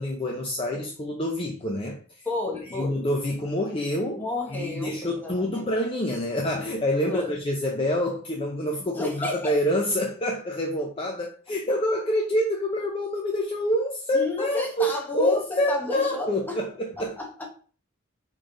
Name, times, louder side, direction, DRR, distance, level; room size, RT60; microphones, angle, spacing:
voice 1, 0.0-2.3 2.7-4.2 4.5-17.2, left 1 dB, 25° left, 0 dB, 0.5 m, -27 dB
voice 2, 2.2-3.0 4.1-5.6 7.0-7.3 8.8-9.5 14.1-16.6 16.9-17.5, left 2 dB, 10° left, 0 dB, 1.0 m, -32 dB
4.0 x 3.2 x 3.8 m, 0.42 s
head